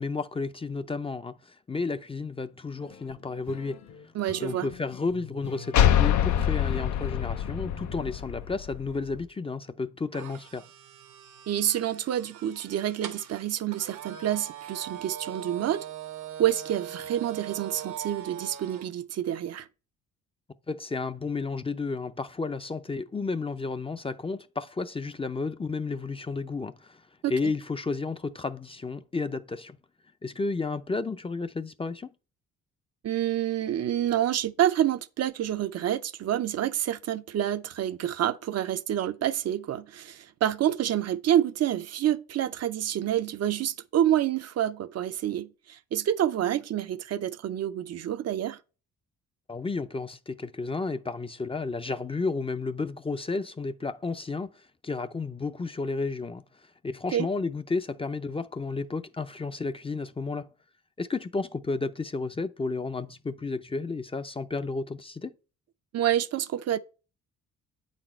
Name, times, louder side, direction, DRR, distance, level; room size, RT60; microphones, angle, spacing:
voice 1, 0.0-3.8 4.4-10.7 20.7-27.0 27.3-29.8 30.2-32.1 49.5-56.4 56.8-60.5 61.0-65.3, left 3 dB, 20° left, 0.5 m, -32 dB
sound 1, 2.8-8.1, left 6 dB, 60° left, 1.1 m, -44 dB
voice 2, 4.1-4.7 11.5-15.9 16.4-19.7 27.2-27.5 33.0-48.6 57.1-57.3 65.9-66.8, right 11 dB, 55° right, 0.6 m, -28 dB
sound 2, 5.7-9.2, left 10 dB, 80° left, 0.7 m, -25 dB
sound 3, 10.1-18.9, right 10 dB, 80° right, 1.1 m, -41 dB
8.6 x 4.2 x 4.3 m
cardioid pair, 90°, 30 cm